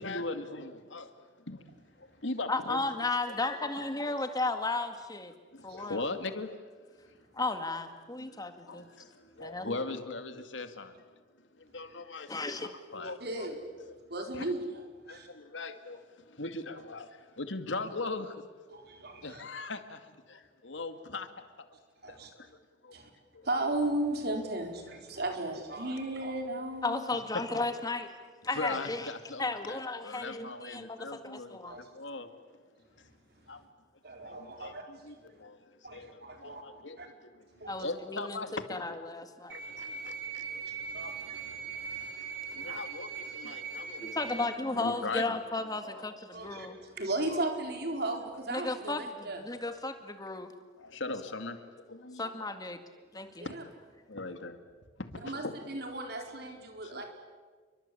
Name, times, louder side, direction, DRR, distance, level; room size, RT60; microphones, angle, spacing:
voice 1, 0.0-1.7 2.0-2.8 3.3-4.1 5.5-6.6 7.1-7.2 8.2-10.9 11.4-13.7 14.3-14.5 15.1-18.4 19.2-21.7 22.1-23.0 23.3-23.5 27.3-27.7 28.5-29.4 29.7-32.6 33.0-33.1 33.5-33.6 34.2-38.8 39.5-40.7 42.6-45.4 45.8-46.0 46.6-46.8 48.1-48.2 50.8-52.4 53.3-53.6 54.1-54.6 55.0-55.5 56.8-57.0, left 3 dB, 90° left, 8 dB, 2.3 m, -40 dB
voice 2, 2.5-5.3 5.6-6.1 7.3-8.9 9.4-9.8 12.3-12.7 26.8-28.1 28.4-29.1 29.4-31.8 37.7-39.5 41.9-42.3 44.0-46.8 48.5-50.5 52.2-52.8 53.1-53.5, left 3 dB, 20° left, 7 dB, 2.0 m, -34 dB
voice 3, 13.2-13.6 14.1-14.6 15.1-15.3 18.7-19.4 22.0-22.3 22.9-23.1 23.4-27.0 31.6-31.9 34.0-34.8 35.8-36.6 37.0-37.1 37.6-37.7 40.7-42.1 42.5-42.8 46.3-49.4 53.4-53.6 55.2-57.1, right 2 dB, 60° right, 3 dB, 4.5 m, -36 dB
sound 1, 39.5-44.5, right 5 dB, 75° right, 3.5 m, -40 dB
29.0 x 24.0 x 8.6 m, 1.4 s
head